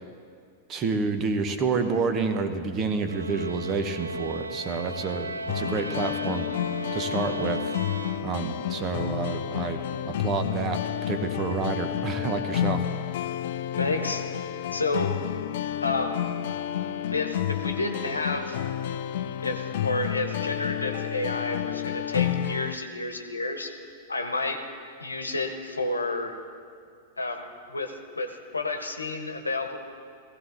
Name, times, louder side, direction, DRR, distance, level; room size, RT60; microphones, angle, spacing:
voice 1, 0.7-6.5 6.9-7.7 8.2-9.8 10.0-10.8 11.1-12.8, right 4 dB, 30° right, 7 dB, 1.1 m, -29 dB
sound 1, 3.0-8.7, right 2 dB, 80° right, 0.4 m, -36 dB
sound 2, 5.5-22.8, left 10 dB, 55° left, 0.5 m, -30 dB
voice 2, 13.8-14.2 14.7-15.1 15.8-16.2 17.1-18.6 19.4-23.7 24.1-24.6 25.0-26.4 27.2-29.8, left 2 dB, 85° left, 6 dB, 1.1 m, -30 dB
17.0 x 16.0 x 4.0 m, 2.3 s
figure-of-eight pair, 95°, 0 cm